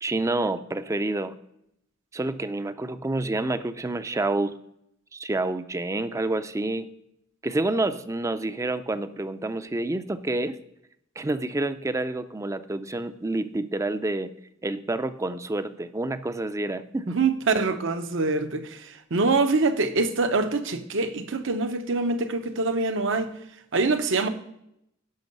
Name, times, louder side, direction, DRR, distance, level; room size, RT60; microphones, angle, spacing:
voice 1, 0.0-1.3 2.1-4.5 5.1-6.9 7.4-10.6 11.2-14.3 14.6-17.2, right 2 dB, 15° right, 0.4 m, -28 dB
voice 2, 17.1-23.3 23.7-24.3, right 3 dB, 70° right, 0.8 m, -25 dB
12.0 x 5.4 x 5.3 m
head